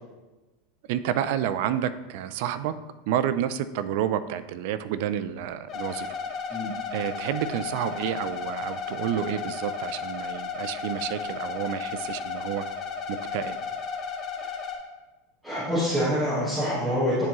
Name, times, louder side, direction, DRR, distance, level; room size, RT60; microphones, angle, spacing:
voice 1, 0.9-2.8 3.1-6.1 6.9-12.7 13.1-13.6, right 10 dB, 60° right, 13 dB, 0.4 m, -29 dB
sound 1, 5.7-14.8, left 5 dB, 30° left, 0.8 m, -34 dB
voice 2, 15.4-17.3, equal, 5° right, -11 dB, 1.4 m, -26 dB
10.0 x 3.6 x 3.0 m, 1.1 s
supercardioid pair, 150°, 0 cm